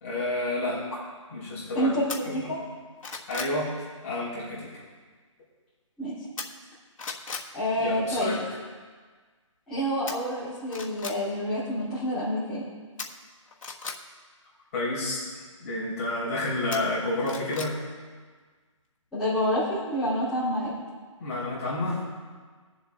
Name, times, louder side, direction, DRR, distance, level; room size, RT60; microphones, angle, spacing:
voice 1, 0.0-0.8 1.3-1.9 2.2-2.5 3.3-3.7 4.0-4.6 7.8-8.4 14.7-15.2 15.6-17.7 21.2-22.0, left 2 dB, 30° left, -8 dB, 3.4 m, -29 dB
voice 2, 1.7-2.6 6.0-6.2 7.5-8.4 9.7-12.6 19.1-20.7, equal, 5° left, -15 dB, 2.9 m, -28 dB
sound 1, 2.1-2.2 2.7-3.6 6.4-6.7 7.0-7.5 10.1-10.2 10.7-11.2 13.0-14.0 16.7-17.7 18.1-18.2, left 4 dB, 80° left, 1.4 m, -36 dB
22.0 x 7.3 x 2.4 m, 1.5 s
hypercardioid pair, 170°, 17 cm